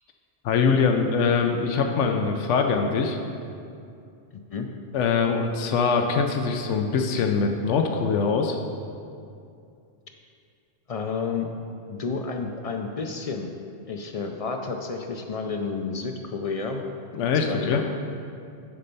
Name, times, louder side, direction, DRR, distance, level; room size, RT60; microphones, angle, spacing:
voice 1, 0.4-3.2 4.9-8.6 17.1-17.8, left 5 dB, 90° left, 4 dB, 1.0 m, -23 dB
voice 2, 10.9-11.5 11.9-13.6 13.9-16.8 17.5-17.8, left 4 dB, 55° left, 4 dB, 0.4 m, -30 dB
10.5 x 4.3 x 5.3 m, 2.5 s
omnidirectional pair, 1.2 m